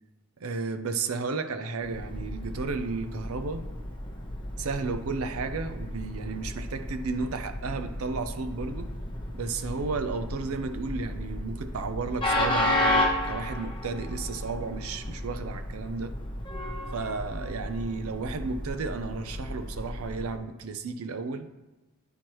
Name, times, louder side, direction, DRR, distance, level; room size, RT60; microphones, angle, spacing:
voice 1, 0.4-3.7 4.6-8.9 9.3-16.1 16.9-21.5, right 4 dB, 75° right, 8 dB, 0.5 m, -33 dB
Train, 1.8-20.4, left 1 dB, 25° left, 0.8 m, -33 dB
10.5 x 4.6 x 3.0 m, 1.1 s
head